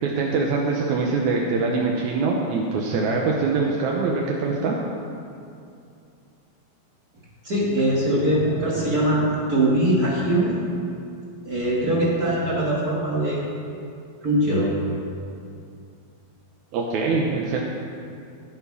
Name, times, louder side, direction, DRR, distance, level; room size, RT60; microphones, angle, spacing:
voice 1, 0.0-4.8 16.7-17.6, right 4 dB, 75° right, -1 dB, 1.8 m, -23 dB
voice 2, 7.4-10.6 11.5-13.4 14.2-14.7, right 1 dB, 50° right, -5 dB, 1.1 m, -22 dB
17.0 x 7.2 x 5.5 m, 2.5 s
omnidirectional pair, 4.4 m